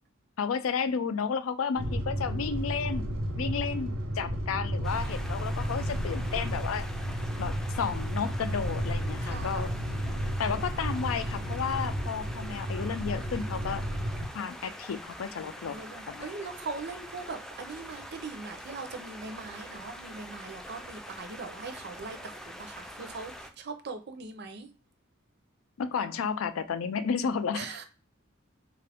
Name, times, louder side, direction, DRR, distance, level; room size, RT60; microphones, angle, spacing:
voice 1, 0.4-3.1 3.4-6.9 7.4-9.7 10.4-13.9 14.3-16.3 25.8-27.7, left 6 dB, 80° left, 0.4 m, -32 dB
sound 1, 1.8-14.3, equal, 85° right, 0.9 m, -32 dB
sound 2, 4.8-23.5, equal, 5° left, 0.4 m, -45 dB
voice 2, 9.2-9.7 15.7-24.7 27.5-27.9, right 4 dB, 55° right, 0.6 m, -41 dB
3.7 x 2.5 x 3.4 m
head